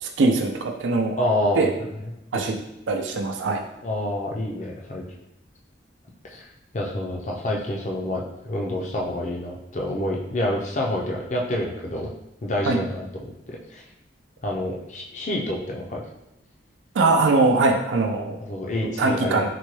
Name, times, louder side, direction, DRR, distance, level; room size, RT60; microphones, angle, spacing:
voice 1, 0.0-1.2 1.6-1.7 2.3-2.6 2.9-3.6 12.7-12.8 16.9-18.4 19.0-19.5, right 3 dB, 85° right, 3 dB, 0.4 m, -21 dB
voice 2, 1.2-2.5 3.8-5.0 6.3-6.5 6.7-12.1 12.4-13.8 14.4-16.0 18.4-19.5, left 1 dB, 40° left, -1 dB, 0.5 m, -28 dB
4.1 x 2.2 x 3.1 m, 0.86 s
head